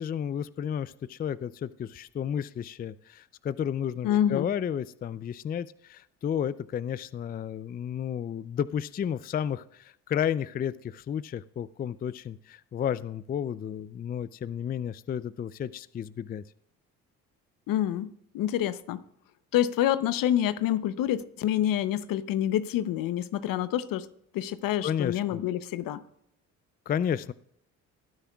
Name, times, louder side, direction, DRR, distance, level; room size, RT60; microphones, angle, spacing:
voice 1, 0.0-16.4 24.8-25.4 26.9-27.3, left 9 dB, 25° left, 0.4 m, -32 dB
voice 2, 4.0-4.5 17.7-19.0 19.5-24.1 24.3-26.0, left 11 dB, 70° left, 0.8 m, -27 dB
18.5 x 9.9 x 2.3 m
supercardioid pair, 60°, 35 cm